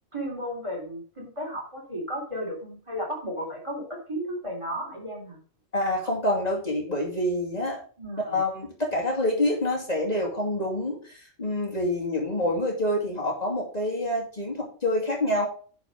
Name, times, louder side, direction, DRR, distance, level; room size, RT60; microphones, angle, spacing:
voice 1, 0.1-5.4 8.0-8.4, equal, 25° right, 0 dB, 3.2 m, -34 dB
voice 2, 5.7-7.8 8.3-15.5, left 1 dB, 30° left, -2 dB, 2.7 m, -27 dB
10.5 x 4.8 x 5.3 m, 0.41 s
omnidirectional pair, 1.3 m